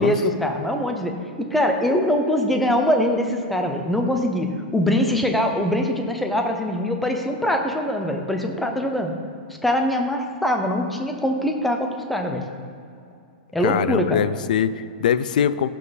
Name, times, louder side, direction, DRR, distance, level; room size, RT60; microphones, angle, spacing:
voice 1, 0.0-9.1 9.6-12.4 13.5-14.2, left 1 dB, ahead, 3 dB, 0.5 m, -23 dB
voice 2, 13.6-15.7, left 8 dB, 60° left, 15 dB, 0.4 m, -22 dB
14.0 x 5.7 x 4.0 m, 2.4 s
supercardioid pair, 180°, 5 cm